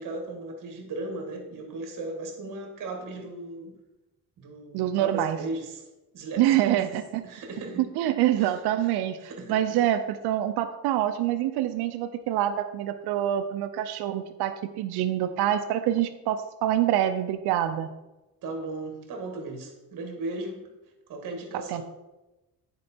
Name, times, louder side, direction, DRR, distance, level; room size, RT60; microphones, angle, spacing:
voice 1, 0.0-3.8 4.4-5.8 6.1-7.0 7.2-7.9 8.3-8.9 9.2-9.9 18.4-20.6 21.1-21.8, right 2 dB, 55° right, 3 dB, 1.8 m, -37 dB
voice 2, 4.7-5.4 6.4-7.2 8.0-9.2 9.5-17.9 21.7-21.8, right 12 dB, 85° right, 9 dB, 0.6 m, -26 dB
9.5 x 4.6 x 4.3 m, 1.0 s
cardioid pair, 115°, 38 cm